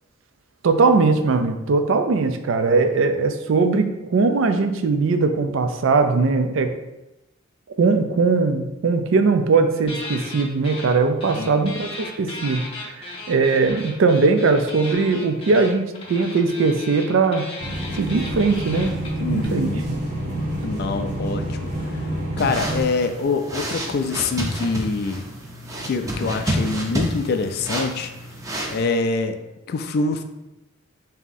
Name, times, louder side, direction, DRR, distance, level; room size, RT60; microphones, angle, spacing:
voice 1, 0.6-6.7 7.8-12.6 12.9-17.4 18.0-18.9 19.2-19.7, right 4 dB, 70° right, 7 dB, 0.4 m, -20 dB
sound 1, 9.9-11.0 11.2-19.5, left 2 dB, 30° left, 0.7 m, -36 dB
voice 2, 11.4-11.7 19.2-19.9 20.6-21.6 22.4-25.3 25.9-28.1 28.7-29.4 29.7-30.2, left 4 dB, 50° left, 7 dB, 0.3 m, -25 dB
sound 2, 17.6-22.8, right 1 dB, 35° right, 0.9 m, -28 dB
sound 3, 22.4-28.8, right 1 dB, 15° right, 0.5 m, -29 dB
3.5 x 2.8 x 3.9 m, 0.95 s
head